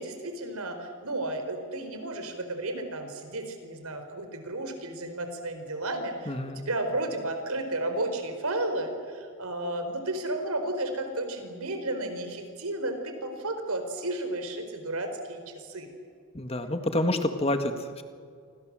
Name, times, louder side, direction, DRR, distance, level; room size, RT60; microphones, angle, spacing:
voice 1, 0.0-15.9, right 1 dB, 85° right, 7 dB, 4.5 m, -33 dB
voice 2, 6.3-6.6 16.3-18.0, left 1 dB, 25° left, 7 dB, 1.8 m, -28 dB
30.0 x 24.5 x 7.6 m, 2.2 s
head